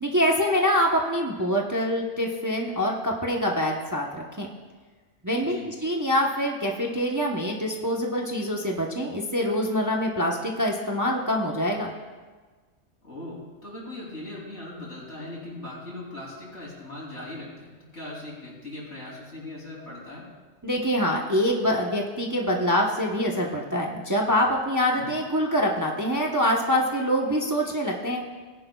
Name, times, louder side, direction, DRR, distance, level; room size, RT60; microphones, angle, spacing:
voice 1, 0.0-4.5 5.2-11.9 20.6-28.2, equal, 15° right, -1 dB, 0.9 m, -25 dB
voice 2, 5.4-5.7 13.0-20.3 25.0-25.1, left 2 dB, 70° left, -4 dB, 3.5 m, -39 dB
18.5 x 10.5 x 2.3 m, 1.4 s
omnidirectional pair, 1.2 m